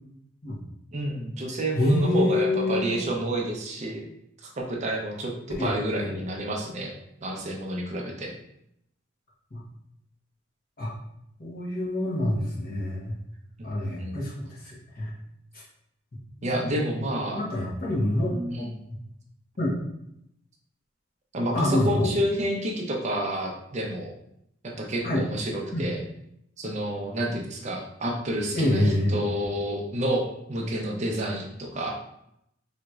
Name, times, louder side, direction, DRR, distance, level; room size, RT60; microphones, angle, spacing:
voice 1, 0.9-4.1 4.4-6.9 7.2-8.3 13.6-13.7 14.0-14.2 16.4-17.4 18.5-18.7 21.3-24.1 24.6-26.0 26.6-32.0, right 1 dB, 40° right, 0 dB, 0.6 m, -29 dB
voice 2, 1.8-3.0 5.6-5.7 6.0-6.2 9.5-9.6 10.8-10.9 11.4-13.2 13.6-15.1 15.5-15.6 16.5-17.0 17.3-18.7 19.6-19.7 21.5-22.1 25.0-25.2 25.7-25.9 28.5-29.4, left 1 dB, 50° left, -5 dB, 1.1 m, -26 dB
4.3 x 2.9 x 2.4 m, 0.78 s
head